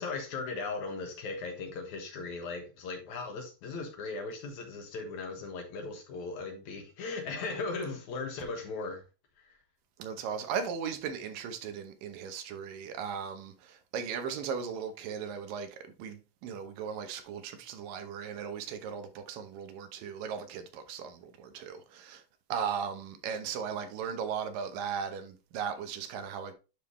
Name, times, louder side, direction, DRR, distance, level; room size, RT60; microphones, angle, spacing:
voice 1, 0.0-9.0 9.4-9.5, left 3 dB, 65° left, 2.6 m, -38 dB
voice 2, 10.0-22.2 22.5-26.5, right 7 dB, 85° right, 2.7 m, -37 dB
11.0 x 3.8 x 3.2 m
omnidirectional pair, 3.8 m